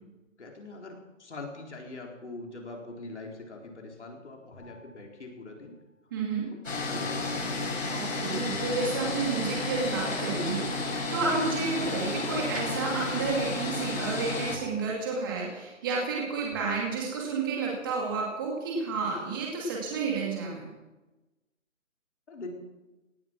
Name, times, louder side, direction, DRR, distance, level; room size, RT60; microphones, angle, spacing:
voice 1, 0.4-5.7 6.4-7.7 22.3-22.5, left 2 dB, 60° left, 0 dB, 4.3 m, -43 dB
sound 1, 4.5-5.7 8.5-10.1 12.5-16.1 16.5-17.4, left 2 dB, 10° left, 6.5 m, -50 dB
voice 2, 6.1-6.5 7.9-20.6, right 4 dB, 15° right, -2 dB, 2.4 m, -31 dB
sound 2, 6.6-14.6, left 3 dB, 85° left, 7.8 m, -32 dB
18.0 x 13.0 x 6.2 m, 1.1 s
hypercardioid pair, 170°, 38 cm